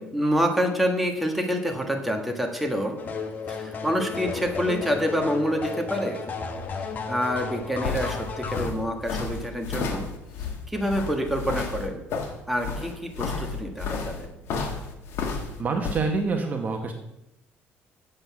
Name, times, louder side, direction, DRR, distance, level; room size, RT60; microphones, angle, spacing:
voice 1, 0.0-3.0 3.5-6.2 7.1-10.1 10.7-12.0 12.5-14.3, equal, ahead, 2 dB, 1.4 m, -27 dB
sound 1, 3.0-8.7, left 4 dB, 40° left, 1.2 m, -33 dB
sound 2, 7.4-16.0, left 4 dB, 65° left, 1.7 m, -32 dB
voice 2, 15.6-16.9, right 4 dB, 35° right, 4 dB, 1.1 m, -26 dB
7.9 x 7.8 x 6.0 m, 0.89 s
cardioid pair, 120°, 5 cm